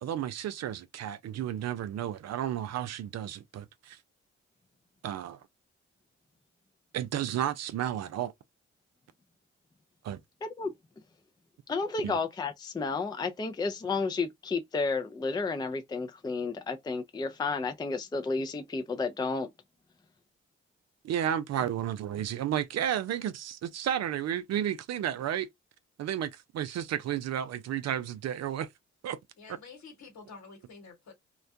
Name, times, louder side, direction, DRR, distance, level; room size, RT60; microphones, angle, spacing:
voice 1, 0.0-4.0 5.0-5.4 6.9-8.3 10.0-10.2 12.0-12.2 21.0-25.5 26.0-28.7 29.0-29.2 29.5-29.6, right 10 dB, 60° right, 0.4 m, -32 dB
voice 2, 10.4-10.7 11.7-19.5, left 4 dB, 15° left, 0.4 m, -32 dB
voice 3, 29.4-31.1, left 4 dB, 65° left, 1.3 m, -49 dB
2.3 x 2.1 x 2.6 m
hypercardioid pair, 45°, 30 cm